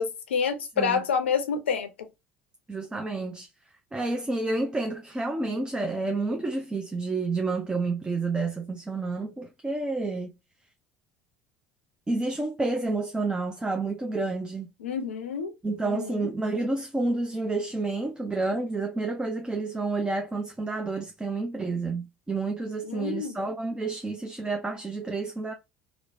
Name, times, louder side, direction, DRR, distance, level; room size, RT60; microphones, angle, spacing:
voice 1, 0.0-2.1 14.8-15.5 15.9-16.3 22.8-23.4, left 6 dB, 80° left, 0.5 m, -28 dB
voice 2, 2.7-3.5 3.9-10.3 12.1-14.7 15.6-25.5, right 3 dB, 15° right, 0.5 m, -29 dB
2.9 x 2.0 x 2.5 m
hypercardioid pair, 65°, 6 cm